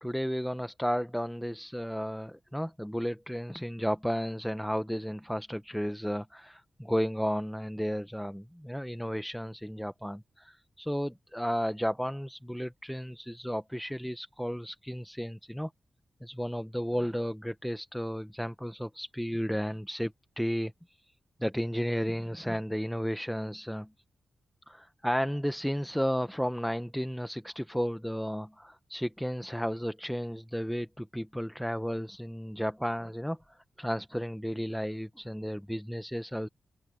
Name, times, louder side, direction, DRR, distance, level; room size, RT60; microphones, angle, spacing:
voice 1, 0.0-15.7 16.2-21.0 21.4-23.9 24.7-33.4 33.8-36.5, equal, ahead, 0.9 m, -33 dB
open air
cardioid pair, 65°, 0 cm